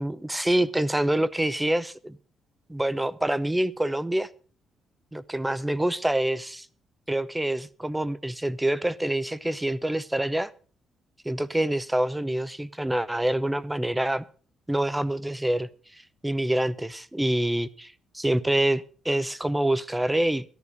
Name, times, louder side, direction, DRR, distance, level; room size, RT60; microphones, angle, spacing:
voice 1, 0.0-2.2 2.7-4.3 5.1-6.7 7.1-10.5 11.2-14.2 14.7-20.4, right 1 dB, 10° right, 16 dB, 0.7 m, -26 dB
13.0 x 11.0 x 5.1 m, 0.40 s
cardioid pair, 90°, 0 cm